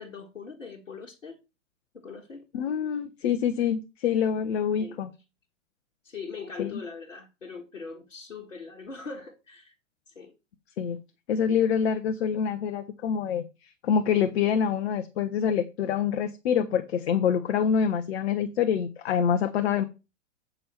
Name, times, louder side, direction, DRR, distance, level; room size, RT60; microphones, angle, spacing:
voice 1, 0.0-1.4 1.9-2.4 4.8-5.0 6.0-9.7 10.1-10.3, left 5 dB, 80° left, 1.5 m, -41 dB
voice 2, 2.5-5.1 6.6-6.8 10.8-11.0 11.3-19.8, left 7 dB, 55° left, 1.0 m, -26 dB
8.6 x 5.5 x 4.3 m
figure-of-eight pair, 105°, 38 cm